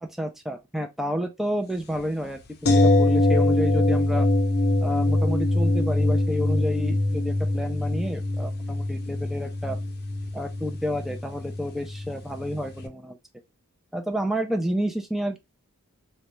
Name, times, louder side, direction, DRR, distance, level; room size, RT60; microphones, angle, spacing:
voice 1, 0.0-4.3 4.8-9.8 10.3-13.2 13.9-15.4, equal, ahead, 0.4 m, -30 dB
sound 1, 2.7-12.5 12.8-12.9, left 2 dB, 45° left, 0.6 m, -23 dB
3.9 x 2.2 x 3.1 m
head